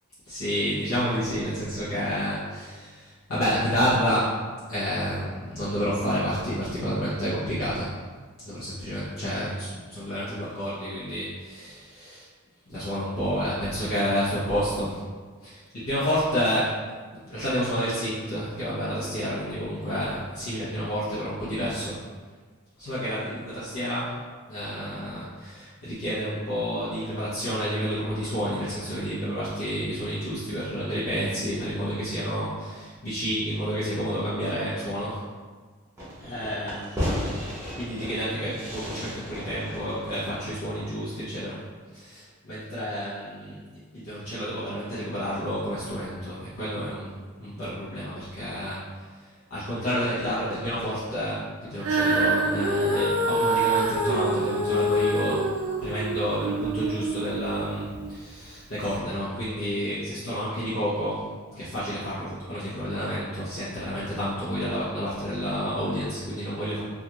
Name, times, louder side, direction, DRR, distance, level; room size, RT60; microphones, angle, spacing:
voice 1, 0.3-4.4 4.7-8.0 8.4-12.3 12.7-15.0 15.4-16.8 17.2-22.0 22.8-24.2 24.5-35.2 36.2-37.0 37.4-41.6 41.9-43.6 43.9-47.1 47.4-48.8 49.1-55.4 55.8-61.3 61.5-66.8, equal, 80° left, -12 dB, 0.7 m, -30 dB
Fireworks, 36.0-41.2, equal, 15° right, 0.7 m, -34 dB
Female singing, 51.8-58.1 58.8-58.9, right 1 dB, 75° right, 0.5 m, -26 dB
2.4 x 2.3 x 2.9 m, 1.5 s
head